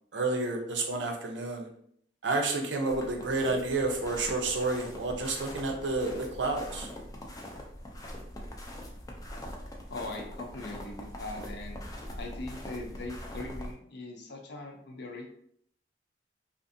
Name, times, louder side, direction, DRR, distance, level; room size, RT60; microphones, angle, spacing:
voice 1, 0.1-1.7 2.2-6.9, right 3 dB, 70° right, 2 dB, 0.6 m, -30 dB
sound 1, 2.9-13.7, equal, 20° left, 0.4 m, -42 dB
voice 2, 9.9-11.8 12.2-15.3, left 2 dB, 65° left, 2 dB, 0.6 m, -40 dB
2.5 x 2.5 x 2.6 m, 0.67 s
head